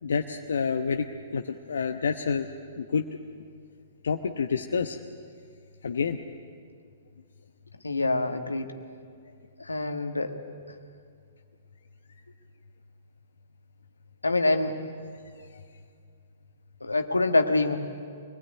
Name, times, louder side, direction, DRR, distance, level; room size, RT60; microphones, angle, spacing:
voice 1, 0.0-1.1 1.3-2.5 2.8-3.0 4.0-5.0 5.8-6.2, left 6 dB, 70° left, 4 dB, 1.0 m, -28 dB
voice 2, 7.8-8.7 9.6-10.4 14.2-15.0 16.8-17.8, left 2 dB, 90° left, 6 dB, 1.7 m, -25 dB
25.0 x 19.5 x 9.6 m, 2.2 s
figure-of-eight pair, 115°, 0 cm